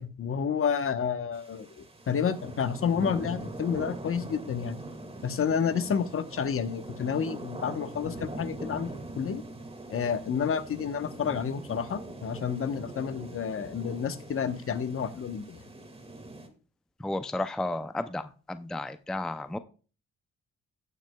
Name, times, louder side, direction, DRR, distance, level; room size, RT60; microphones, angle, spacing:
voice 1, 0.0-4.8 5.2-9.4 9.9-15.6, left 7 dB, 45° left, 10 dB, 1.0 m, -30 dB
sound 1, 1.3-16.5, right 2 dB, 20° right, 1.9 m, -42 dB
voice 2, 17.0-19.6, left 2 dB, ahead, 10 dB, 0.5 m, -33 dB
16.5 x 6.3 x 2.3 m, 0.38 s
cardioid pair, 90°, 30 cm